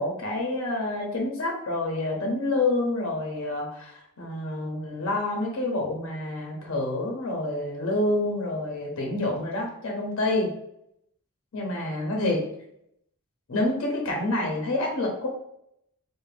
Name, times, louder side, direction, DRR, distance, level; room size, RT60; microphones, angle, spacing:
voice 1, 0.0-10.5 11.5-12.4 13.5-15.3, left 2 dB, 60° left, 0 dB, 0.6 m, -28 dB
2.5 x 2.1 x 3.2 m, 0.74 s
head